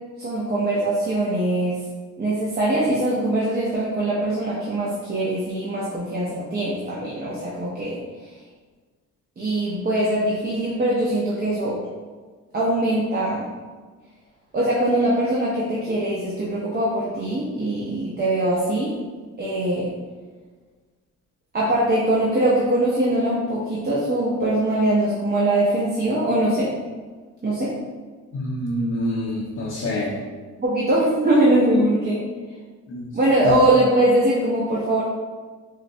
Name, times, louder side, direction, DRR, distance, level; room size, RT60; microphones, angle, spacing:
voice 1, 0.2-1.8 2.2-8.0 9.4-11.8 12.5-13.4 14.5-18.9 19.4-19.9 21.5-26.7 27.4-27.7 30.6-32.2 33.1-35.0, right 1 dB, 30° right, -6 dB, 0.6 m, -22 dB
voice 2, 28.3-30.2 32.9-33.1 33.4-33.6, left 1 dB, 45° left, -5 dB, 0.6 m, -26 dB
3.8 x 2.1 x 2.6 m, 1.4 s
cardioid pair, 90°, 30 cm